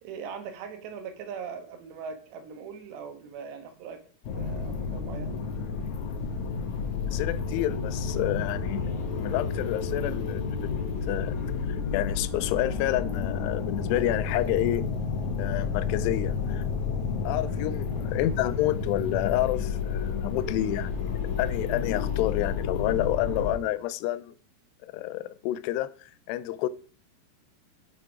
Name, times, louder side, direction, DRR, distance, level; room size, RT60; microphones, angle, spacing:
voice 1, 0.0-4.0 4.3-5.4 17.9-18.2, right 6 dB, 85° right, 3.3 m, -40 dB
sound 1, 4.2-23.5, left 5 dB, 65° left, 1.9 m, -30 dB
voice 2, 7.1-8.8 9.2-10.7 11.1-11.4 11.7-14.9 15.4-16.6 17.2-20.9 21.4-24.3 24.8-26.7, left 14 dB, 85° left, 2.6 m, -29 dB
7.3 x 6.7 x 4.8 m
omnidirectional pair, 4.8 m